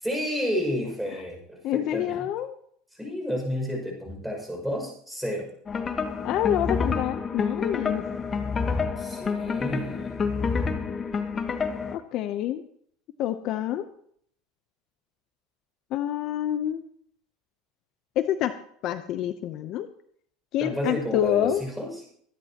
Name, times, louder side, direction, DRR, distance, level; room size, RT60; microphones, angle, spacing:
voice 1, 0.0-2.2 3.0-5.5 9.0-10.1 20.6-21.9, equal, 5° right, 1 dB, 6.1 m, -30 dB
voice 2, 1.6-2.5 6.2-8.0 11.9-12.6 13.2-13.9 15.9-16.8 18.2-18.5 18.8-19.9 20.5-21.6, left 12 dB, 50° left, 10 dB, 0.8 m, -27 dB
sound 1, 5.7-12.0, left 5 dB, 25° left, 1.2 m, -28 dB
24.0 x 11.0 x 3.0 m, 0.64 s
supercardioid pair, 125°, 0 cm